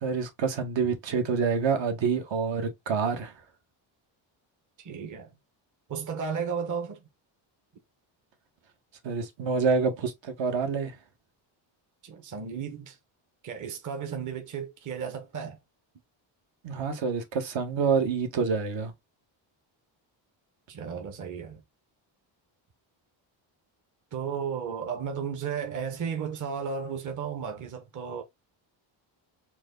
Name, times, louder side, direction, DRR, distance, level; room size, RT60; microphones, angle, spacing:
voice 1, 0.0-3.3 9.0-10.9 16.6-18.9, right 5 dB, 65° right, 1.3 m, -27 dB
voice 2, 4.8-5.3 5.9-7.0 12.0-13.0 13.4-15.6 20.7-21.6 24.1-28.2, right 6 dB, 40° right, 1.0 m, -34 dB
4.6 x 2.3 x 3.7 m
cardioid pair, 140°, 47 cm